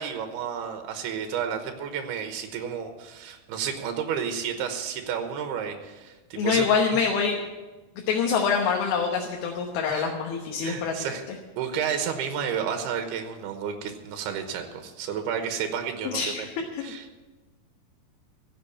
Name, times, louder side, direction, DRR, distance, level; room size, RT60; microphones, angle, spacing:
voice 1, 0.0-6.8 9.8-10.1 10.6-11.2 11.6-16.5 16.8-17.2, right 7 dB, 80° right, 6 dB, 3.2 m, -31 dB
voice 2, 6.4-7.4 8.1-10.9 16.0-16.8, left 6 dB, 75° left, 1 dB, 3.0 m, -25 dB
15.0 x 7.6 x 8.5 m, 1.2 s
omnidirectional pair, 4.5 m